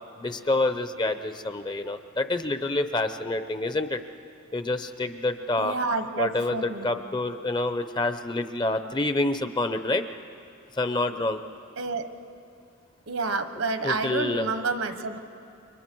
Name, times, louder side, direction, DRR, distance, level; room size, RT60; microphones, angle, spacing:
voice 1, 0.2-4.0 4.5-5.8 6.2-10.0 10.7-11.4 13.8-14.5, left 2 dB, 20° left, 10 dB, 0.6 m, -27 dB
voice 2, 5.6-6.9 11.8-12.1 13.1-15.2, right 3 dB, 75° right, 8 dB, 1.3 m, -29 dB
29.5 x 24.5 x 4.6 m, 2.6 s
head